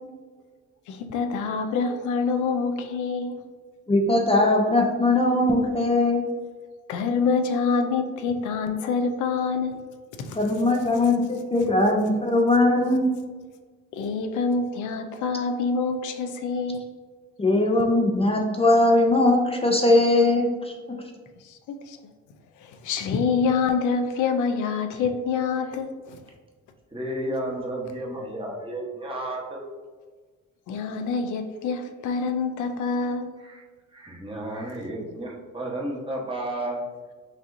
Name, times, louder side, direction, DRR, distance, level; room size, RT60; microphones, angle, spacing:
voice 1, 0.9-3.4 6.9-9.8 10.2-10.4 13.9-16.9 21.4-22.0 22.6-26.2 30.7-33.3, left 5 dB, 80° left, 6 dB, 0.5 m, -26 dB
voice 2, 3.9-6.2 10.3-13.1 17.4-20.7, left 2 dB, 20° left, 1 dB, 0.6 m, -20 dB
voice 3, 26.9-29.6 33.4-33.6 33.9-36.8, right 1 dB, 15° right, -3 dB, 1.1 m, -32 dB
6.1 x 2.7 x 2.6 m, 1.4 s
cardioid pair, 90°, 30 cm